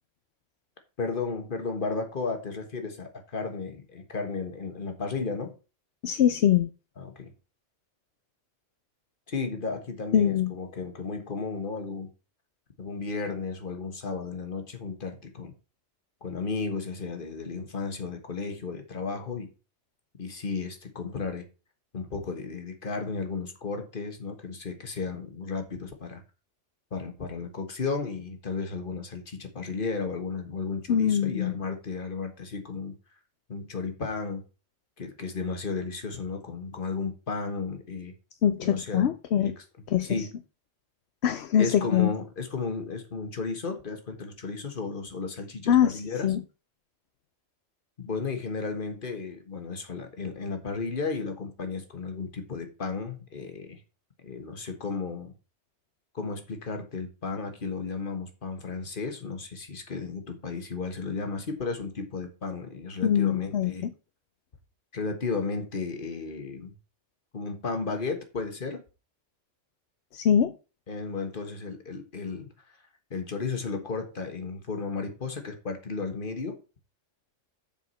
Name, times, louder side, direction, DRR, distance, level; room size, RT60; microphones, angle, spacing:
voice 1, 1.0-5.5 7.0-7.3 9.3-12.1 12.8-15.5 16.2-19.5 20.2-21.5 21.9-26.2 26.9-32.9 33.5-34.4 35.0-38.1 38.6-39.1 39.4-39.6 40.0-40.3 41.6-46.3 48.0-53.8 54.2-55.3 56.1-63.9 64.9-66.7 67.3-68.8 70.9-72.5 73.1-76.6, left 4 dB, 45° left, 1.6 m, -34 dB
voice 2, 6.0-6.7 10.1-10.5 30.9-31.6 38.4-39.5 39.9-40.3 41.2-42.1 45.7-46.4 63.0-63.9 70.1-70.5, left 9 dB, 65° left, 0.9 m, -23 dB
7.2 x 4.8 x 5.6 m
omnidirectional pair, 1.2 m